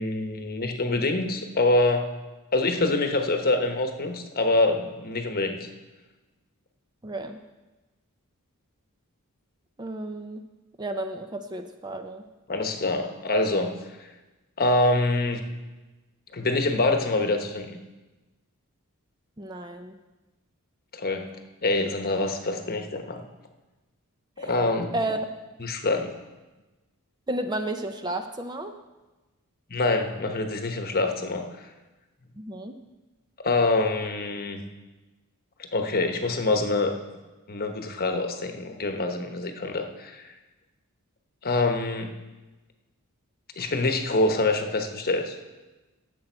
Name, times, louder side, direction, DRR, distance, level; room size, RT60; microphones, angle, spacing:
voice 1, 0.0-2.0 2.5-5.6 12.5-13.7 14.6-15.4 16.3-17.8 20.9-23.2 24.4-24.9 25.6-26.1 29.7-31.7 33.4-34.6 35.7-36.9 37.5-40.2 41.4-42.1 43.6-45.4, left 2 dB, 45° left, 5 dB, 1.0 m, -25 dB
voice 2, 7.0-7.4 9.8-10.4 10.8-12.2 19.4-20.0 24.4-24.5 24.9-25.2 27.3-28.8 32.4-32.8, right 1 dB, 20° right, 7 dB, 0.6 m, -32 dB
16.5 x 7.7 x 4.4 m, 1.1 s
head